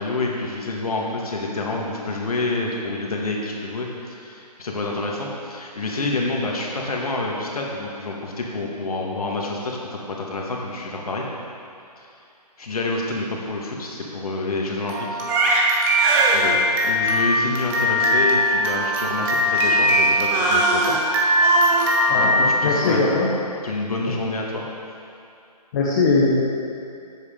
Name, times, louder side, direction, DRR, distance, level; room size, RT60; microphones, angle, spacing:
voice 1, 0.0-11.3 12.0-12.1 12.6-15.2 16.3-16.6 16.8-20.9 22.2-23.0 23.6-24.6, left 2 dB, 60° left, -1 dB, 1.9 m, -28 dB
Crying sobbing, 14.9-23.1, right 1 dB, 10° right, 0.5 m, -20 dB
voice 2, 22.1-23.3 24.1-24.2 25.7-26.4, left 3 dB, 25° left, -4 dB, 0.9 m, -20 dB
11.0 x 8.1 x 3.8 m, 2.5 s
figure-of-eight pair, 145°, 21 cm